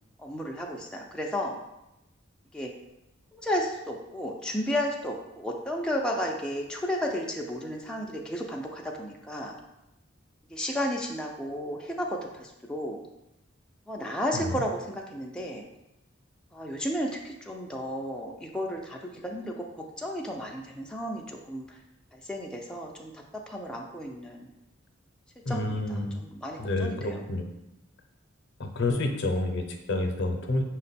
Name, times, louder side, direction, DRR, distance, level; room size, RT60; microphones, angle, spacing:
voice 1, 0.2-1.5 2.5-2.7 3.3-9.6 10.5-13.0 13.9-15.6 16.5-21.8 22.1-24.5 25.5-27.2, equal, 5° left, -1 dB, 0.4 m, -33 dB
voice 2, 25.5-26.2 26.6-27.5 28.6-30.6, left 2 dB, 65° left, 4 dB, 0.6 m, -29 dB
5.8 x 2.2 x 4.0 m, 0.91 s
head